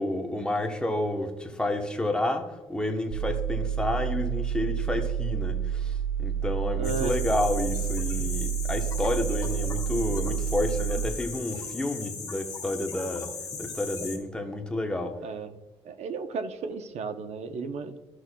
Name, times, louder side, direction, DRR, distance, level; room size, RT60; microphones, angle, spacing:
voice 1, 0.0-13.3 13.6-15.2, left 1 dB, 10° left, 4 dB, 0.9 m, -30 dB
sound 1, 3.1-11.1, right 8 dB, 45° right, 0.5 m, -29 dB
sound 2, 6.8-14.2, left 5 dB, 30° left, 2.0 m, -38 dB
voice 2, 6.8-7.1 15.2-15.5 15.8-18.0, right 5 dB, 75° right, 8 dB, 0.7 m, -34 dB
13.0 x 6.2 x 2.2 m, 1.1 s
cardioid pair, 125°, 11 cm